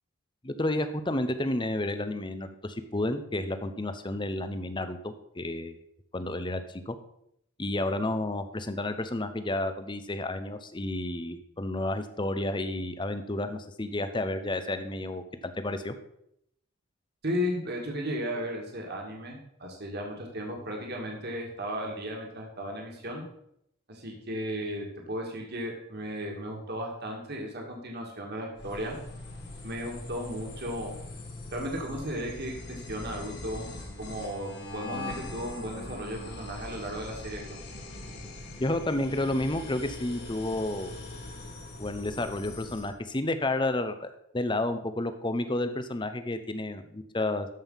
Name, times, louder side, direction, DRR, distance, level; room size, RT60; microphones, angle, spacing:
voice 1, 0.4-5.8 6.1-7.0 7.6-15.9 38.6-40.9 41.8-47.5, left 1 dB, 20° left, 10 dB, 0.7 m, -31 dB
voice 2, 17.2-23.2 23.9-29.0 29.6-31.0 31.5-33.6 34.0-37.6, equal, 50° right, 0 dB, 2.1 m, -35 dB
sound 1, 28.6-42.9, left 2 dB, 50° left, 2.4 m, -42 dB
13.0 x 5.5 x 5.6 m, 0.75 s
head